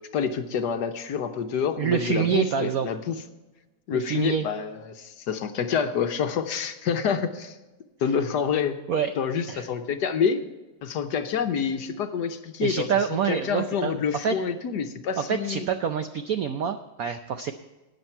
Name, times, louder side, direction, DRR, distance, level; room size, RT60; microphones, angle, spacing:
voice 1, 0.1-3.2 3.9-7.6 8.0-8.8 9.2-10.4 10.8-15.6, left 6 dB, 65° left, 8 dB, 1.2 m, -27 dB
voice 2, 1.8-2.9 3.9-4.5 8.9-9.1 9.5-9.7 12.6-14.3 15.3-17.5, right 7 dB, 75° right, 8 dB, 0.8 m, -26 dB
13.0 x 9.6 x 4.4 m, 1.1 s
omnidirectional pair, 2.1 m